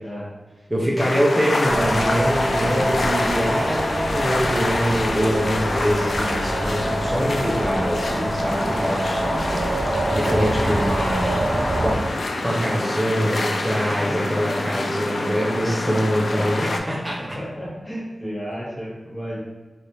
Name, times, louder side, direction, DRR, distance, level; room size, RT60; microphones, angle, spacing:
voice 1, 0.7-9.7 10.1-11.4 11.8-12.0 12.4-17.4, equal, 15° right, -6 dB, 0.6 m, -24 dB
sound 1, 1.0-16.8, left 2 dB, 75° left, 0.3 m, -27 dB
sound 2, 1.6-11.9, right 1 dB, 75° right, 0.6 m, -26 dB
voice 2, 10.3-10.7 13.9-14.4 17.1-19.4, equal, 20° left, -5 dB, 1.0 m, -33 dB
3.3 x 2.5 x 2.8 m, 1.2 s
wide cardioid pair, 75°, 0 cm